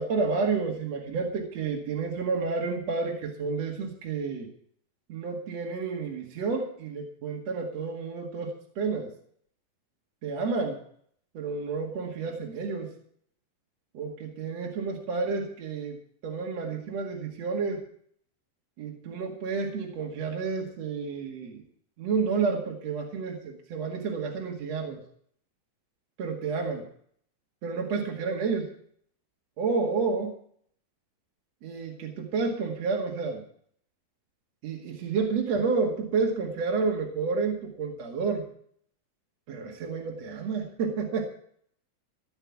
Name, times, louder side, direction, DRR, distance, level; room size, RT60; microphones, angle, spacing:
voice 1, 0.0-4.5 5.1-9.1 10.2-10.8 11.3-12.9 13.9-16.0 16.2-17.8 18.8-21.6 22.0-25.0 26.2-26.8 27.6-28.7 29.6-30.3 31.6-33.4 34.6-38.4 39.5-41.2, right 4 dB, 50° right, -1 dB, 2.9 m, -30 dB
16.0 x 5.8 x 9.6 m, 0.62 s
omnidirectional pair, 4.1 m